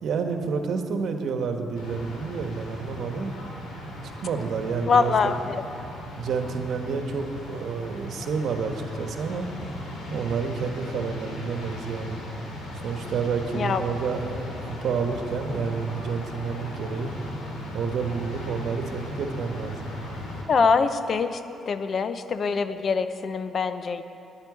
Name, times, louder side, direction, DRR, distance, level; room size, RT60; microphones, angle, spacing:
voice 1, 0.0-3.3 4.2-5.7 6.2-9.5 10.1-12.2 12.8-17.1 17.7-19.9, right 5 dB, 65° right, 5 dB, 1.3 m, -29 dB
sound 1, 1.7-20.4, left 1 dB, 90° left, 2.9 m, -37 dB
voice 2, 4.9-5.4 13.5-13.8 20.5-21.4 21.7-24.0, left 5 dB, 50° left, 11 dB, 0.7 m, -23 dB
10.0 x 8.9 x 9.9 m, 2.7 s
cardioid pair, 90°, 0 cm